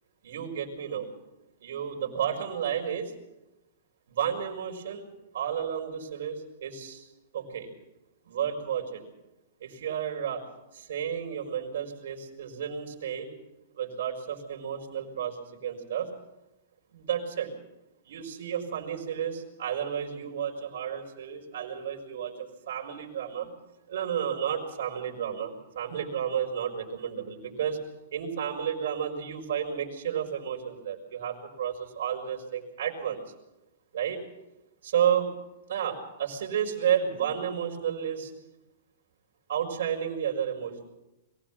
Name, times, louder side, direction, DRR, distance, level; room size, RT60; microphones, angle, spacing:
voice 1, 0.2-1.1 1.6-3.1 4.1-5.1 5.3-7.1 7.3-7.7 8.2-9.0 9.6-10.4 10.7-13.3 13.7-16.1 16.9-17.5 18.0-23.5 23.9-27.8 28.1-33.2 33.9-34.2 34.8-35.3 35.7-38.3 39.5-40.8, right 8 dB, 75° right, 0 dB, 5.0 m, -31 dB
22.5 x 16.5 x 7.5 m, 0.95 s
hypercardioid pair, 155°, 0 cm